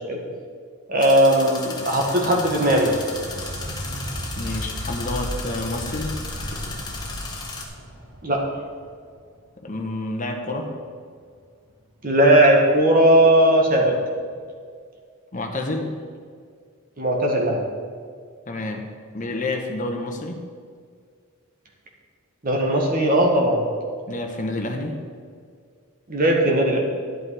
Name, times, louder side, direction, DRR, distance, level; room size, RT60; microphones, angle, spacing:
voice 1, 0.9-2.9 8.2-8.4 12.0-13.9 17.0-17.6 22.4-23.6 26.1-26.8, right 1 dB, 40° right, 0 dB, 1.7 m, -18 dB
sound 1, 1.0-7.6, left 3 dB, 20° left, 1.3 m, -35 dB
sound 2, 1.8-9.3 12.7-12.8 13.8-13.9, equal, 85° right, 1.6 m, -35 dB
voice 2, 4.4-6.2 9.6-10.7 15.3-16.0 18.5-18.9 19.1-20.4 24.1-25.0, left 2 dB, 35° left, 3 dB, 1.1 m, -29 dB
11.0 x 8.5 x 4.9 m, 2.1 s
head